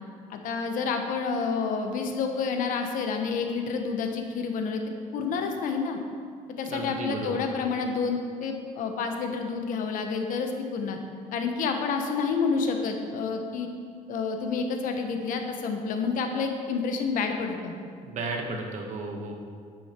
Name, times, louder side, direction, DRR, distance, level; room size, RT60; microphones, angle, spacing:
voice 1, 0.3-4.8 5.1-6.0 6.6-11.0 11.3-13.7 14.1-17.7, left 5 dB, 65° left, 4 dB, 1.3 m, -29 dB
voice 2, 6.7-7.4 18.0-19.3, right 3 dB, 55° right, 1 dB, 1.6 m, -33 dB
10.0 x 9.2 x 4.6 m, 2.2 s
cardioid pair, 140°, 15 cm